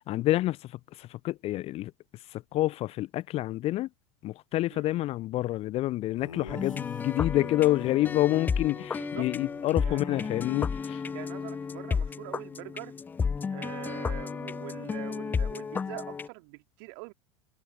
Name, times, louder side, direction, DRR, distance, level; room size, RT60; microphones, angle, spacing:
voice 1, 0.1-1.9 2.3-3.9 4.2-11.0, left 16 dB, 35° left, 0.9 m, -28 dB
voice 2, 4.7-5.0 9.0-9.3 9.8-10.3 11.1-13.0 13.5-17.1, right 37 dB, 50° right, 3.0 m, -44 dB
Laughter, 6.2-7.9 8.3-8.4 8.7-8.9 9.2-10.7, left 7 dB, 75° left, 1.5 m, -47 dB
sound 1, 6.5-16.3, left 5 dB, 10° left, 0.3 m, -33 dB
figure-of-eight pair, 80°, 17 cm